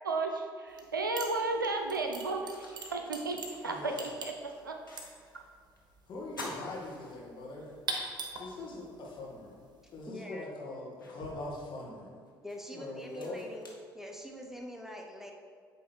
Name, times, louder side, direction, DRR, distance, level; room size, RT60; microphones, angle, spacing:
voice 1, 0.0-4.8, right 3 dB, 85° right, 4 dB, 0.5 m, -34 dB
sound 1, 0.7-0.9 1.2-10.1, right 3 dB, 40° right, 1.1 m, -43 dB
sound 2, 1.5-1.6 2.1-5.5 5.8-5.9 6.3-7.7 8.2-8.3 9.7-9.8 10.4-14.6, left 2 dB, 85° left, 0.8 m, -50 dB
voice 2, 3.6-4.1 6.1-7.7 8.4-9.6 9.9-12.2 12.7-13.4, left 2 dB, 45° left, -3 dB, 1.9 m, -42 dB
voice 3, 10.1-10.5 12.4-13.7 13.9-15.3, equal, 5° right, 1 dB, 1.0 m, -44 dB
8.7 x 3.6 x 4.5 m, 2.1 s
figure-of-eight pair, 50°, 11 cm